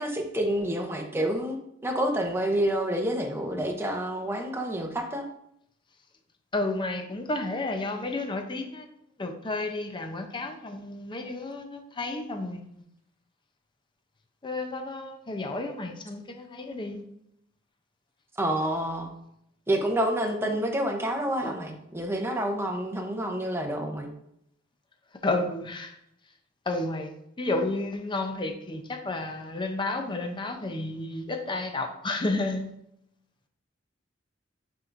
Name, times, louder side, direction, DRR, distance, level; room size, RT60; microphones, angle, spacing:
voice 1, 0.0-1.6 1.8-5.3 18.4-19.1 19.7-24.1, right 1 dB, 15° right, 3 dB, 0.8 m, -28 dB
voice 2, 6.5-8.8 9.2-12.6 14.4-17.0 21.4-21.5 25.2-25.9 26.7-27.1 27.4-32.8, left 2 dB, 25° left, 6 dB, 0.6 m, -31 dB
8.3 x 4.6 x 2.6 m, 0.75 s
head